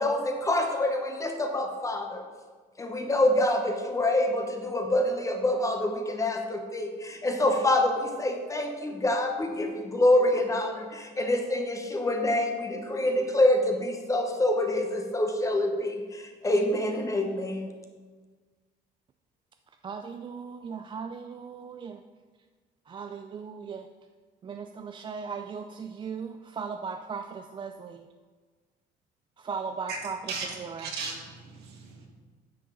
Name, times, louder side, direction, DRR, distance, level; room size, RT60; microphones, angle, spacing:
voice 1, 0.0-2.2 2.8-17.7, left 1 dB, 20° left, 4 dB, 1.0 m, -26 dB
voice 2, 19.8-22.0 22.9-23.9 24.4-28.0 29.4-30.9, right 5 dB, 30° right, 6 dB, 0.3 m, -37 dB
voice 3, 30.3-32.0, right 4 dB, 75° right, 1 dB, 1.6 m, -37 dB
9.5 x 5.3 x 3.9 m, 1.5 s
cardioid pair, 110°, 17 cm